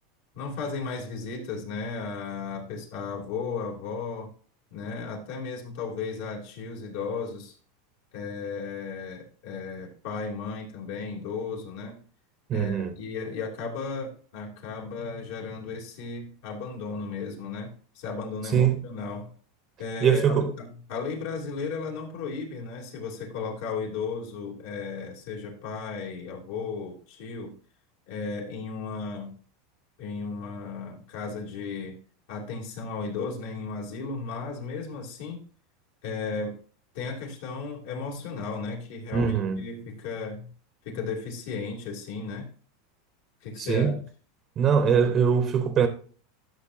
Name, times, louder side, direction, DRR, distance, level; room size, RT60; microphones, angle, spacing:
voice 1, 0.3-4.3 4.7-7.5 8.1-12.0 12.5-19.3 19.8-27.5 28.1-29.3 30.0-32.0 32.3-35.4 36.0-36.5 36.9-40.5 40.8-42.5 43.4-43.9, left 4 dB, 70° left, 3.1 m, -35 dB
voice 2, 12.5-12.9 18.5-18.8 20.0-20.5 39.1-39.7 43.6-44.0 44.6-45.9, right 7 dB, 30° right, 0.8 m, -22 dB
13.0 x 6.5 x 2.7 m
supercardioid pair, 140°, 0 cm